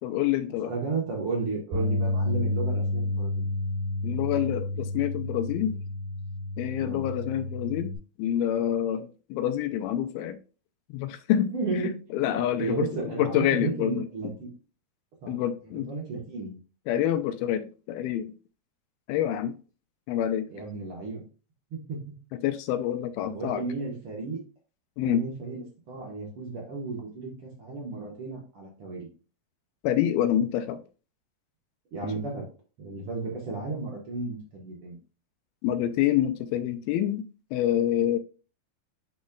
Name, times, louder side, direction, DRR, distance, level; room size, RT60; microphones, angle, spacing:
voice 1, 0.0-0.7 4.0-5.8 6.6-7.9 8.2-10.4 10.9-14.3 15.3-15.9 16.9-18.3 19.1-19.6 20.1-20.5 22.4-23.6 25.0-25.2 29.8-30.8 35.6-37.2 37.5-38.2, left 11 dB, 85° left, 2.3 m, -27 dB
voice 2, 0.6-3.4 6.8-7.1 11.5-12.0 12.2-14.5 15.2-15.3 15.9-16.6 20.5-21.2 21.7-22.0 23.2-24.4 25.0-29.1 31.9-32.4 32.8-35.0, right 3 dB, 60° right, 1.5 m, -33 dB
Bass guitar, 1.7-8.0, left 2 dB, 75° right, 4.5 m, -30 dB
10.5 x 4.1 x 2.3 m
omnidirectional pair, 4.5 m